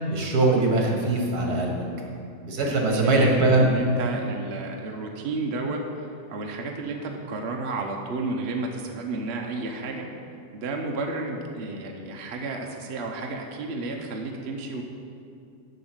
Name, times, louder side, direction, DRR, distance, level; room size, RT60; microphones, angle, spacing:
voice 1, 0.1-1.8 2.4-3.6, right 2 dB, 65° right, 0 dB, 2.0 m, -22 dB
voice 2, 2.6-10.1 10.5-14.8, right 3 dB, 50° right, 1 dB, 0.9 m, -32 dB
8.0 x 6.1 x 7.8 m, 2.5 s
omnidirectional pair, 1.8 m